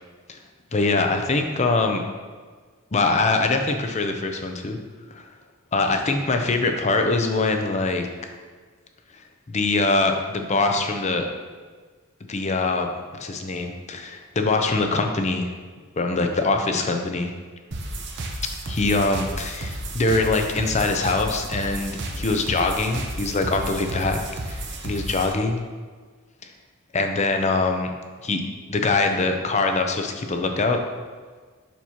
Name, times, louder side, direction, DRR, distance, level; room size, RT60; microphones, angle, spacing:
voice 1, 0.7-2.0 2.9-4.8 5.1-5.2 5.7-8.1 9.5-11.3 12.3-15.5 15.9-17.3 18.7-24.2 24.5-25.6 26.4-26.5 26.9-27.9 28.2-28.4 28.7-30.8, left 3 dB, 35° left, 4 dB, 0.6 m, -23 dB
sound 1, 17.7-25.3, right 1 dB, 55° right, 0.8 m, -32 dB
7.2 x 6.0 x 2.8 m, 1.5 s
head